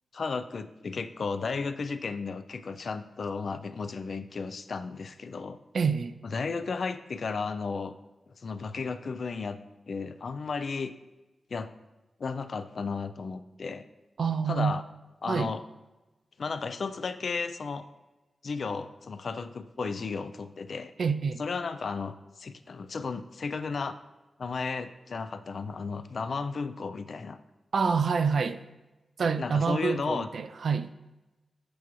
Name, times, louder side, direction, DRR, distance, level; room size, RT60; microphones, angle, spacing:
voice 1, 0.1-5.6 6.2-7.9 8.4-9.6 9.9-10.9 11.5-11.7 12.2-13.8 14.5-14.8 15.2-15.6 16.4-17.9 18.4-20.9 21.4-24.0 24.4-27.4 29.4-30.3, left 4 dB, 50° left, 11 dB, 0.3 m, -34 dB
voice 2, 5.7-6.2 14.2-14.8 15.3-15.5 21.0-21.4 27.7-28.6 29.2-30.9, right 5 dB, 60° right, 11 dB, 0.3 m, -27 dB
8.2 x 4.8 x 3.0 m, 1.1 s
wide cardioid pair, 155°, 0 cm